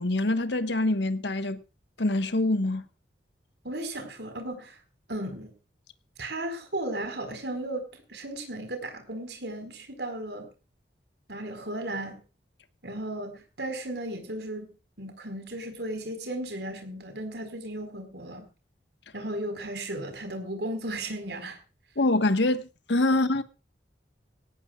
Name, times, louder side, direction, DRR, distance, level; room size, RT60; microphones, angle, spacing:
voice 1, 0.0-1.6 2.0-2.8 22.0-23.4, left 2 dB, 75° left, 1.3 m, -25 dB
voice 2, 3.6-4.8 5.1-5.5 6.2-10.5 11.3-12.2 12.8-14.7 15.0-18.5 19.1-21.6, right 1 dB, 70° right, 4.6 m, -35 dB
18.5 x 17.5 x 2.4 m
head